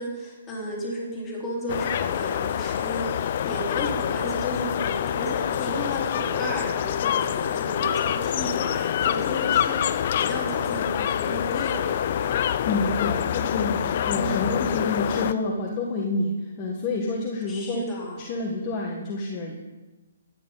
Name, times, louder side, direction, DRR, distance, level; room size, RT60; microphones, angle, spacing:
voice 1, 0.0-12.3 14.1-14.6 17.5-18.2, equal, 15° left, -5 dB, 3.7 m, -33 dB
sound 1, 1.7-15.3, left 9 dB, 45° left, 0.5 m, -26 dB
voice 2, 12.6-17.8 18.2-19.6, left 3 dB, 30° left, -2 dB, 1.6 m, -28 dB
13.5 x 9.5 x 4.1 m, 1.1 s
hypercardioid pair, 145°, 0 cm